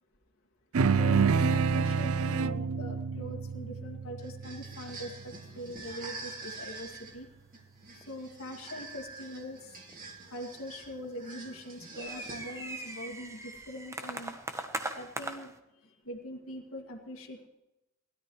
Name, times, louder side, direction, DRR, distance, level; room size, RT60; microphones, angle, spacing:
sound 1, 0.7-5.5, right 5 dB, 80° right, 0.5 m, -28 dB
voice 1, 0.9-7.3 7.9-9.8 10.3-14.4 15.0-17.5, equal, 70° left, 0 dB, 2.2 m, -43 dB
sound 2, 4.2-12.8, right 3 dB, 40° right, 2.7 m, -46 dB
sound 3, 4.6-5.0 5.3-5.5 5.8-6.0 6.3-6.6 6.9-7.5 8.0-8.1 8.8-9.1 9.9-10.8 11.0-15.6, right 2 dB, 15° right, 1.1 m, -40 dB
20.0 x 13.0 x 3.2 m, 0.91 s
head